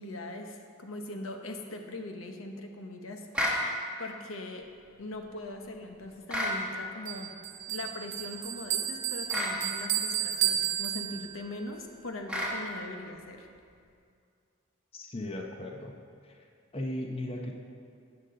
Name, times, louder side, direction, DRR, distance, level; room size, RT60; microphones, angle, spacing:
voice 1, 0.0-3.4 4.0-4.7 5.0-7.3 7.7-13.5, left 2 dB, 80° left, 4 dB, 1.0 m, -41 dB
sound 1, 3.3-3.6 6.3-6.6 9.3-9.6 12.3-12.6, equal, 5° right, 1.2 m, -29 dB
Bell, 7.1-11.6, right 10 dB, 55° right, 1.0 m, -32 dB
voice 2, 14.9-16.5 16.7-17.5, left 1 dB, 30° left, 2 dB, 0.7 m, -37 dB
13.5 x 8.4 x 3.8 m, 2.3 s
head